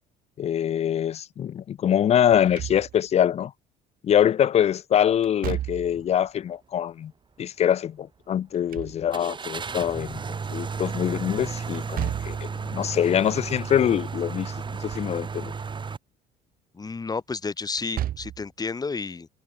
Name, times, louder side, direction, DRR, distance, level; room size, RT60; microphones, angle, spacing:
voice 1, 0.4-3.5 4.0-7.1 7.4-15.5, left 9 dB, 40° left, 0.5 m, -24 dB
Slam / Thump thud, 2.3-3.2 5.2-6.1 8.4-9.4 11.7-12.5 14.6-15.2 15.6-15.7 17.7-18.5, right 12 dB, 60° right, 0.9 m, -34 dB
sound 1, 5.8-6.1 6.5-6.6 9.1-16.0, right 5 dB, 30° right, 2.0 m, -33 dB
voice 2, 16.7-19.3, left 4 dB, 20° left, 2.5 m, -31 dB
cardioid pair, 110°, 17 cm